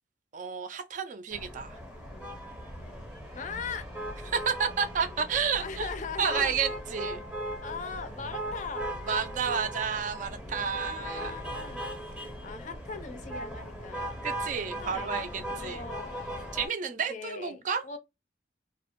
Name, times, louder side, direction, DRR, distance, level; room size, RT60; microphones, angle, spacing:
voice 1, 0.3-1.8 4.3-5.9 6.2-7.2 9.1-11.4 14.2-15.8 16.5-17.8, right 6 dB, 45° right, 0.4 m, -31 dB
sound 1, 1.3-16.7, right 1 dB, 5° right, 0.6 m, -38 dB
voice 2, 3.4-3.9 5.6-6.5 7.6-8.9 10.6-14.2 14.8-16.6 17.1-18.0, left 5 dB, 45° left, 0.4 m, -40 dB
2.4 x 2.0 x 2.8 m
head